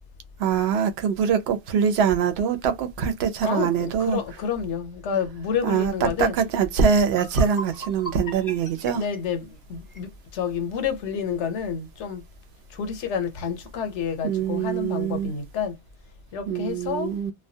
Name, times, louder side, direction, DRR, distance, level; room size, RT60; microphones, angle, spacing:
voice 1, 0.4-4.2 5.6-9.0 14.2-15.3 16.5-17.3, right 7 dB, 70° right, 0.8 m, -23 dB
voice 2, 3.4-6.3 8.9-12.2 12.7-15.7 16.3-17.1, left 7 dB, 85° left, 1.0 m, -29 dB
sound 1, 7.0-10.1, equal, 20° left, 0.6 m, -39 dB
2.2 x 2.1 x 2.6 m
omnidirectional pair, 1.2 m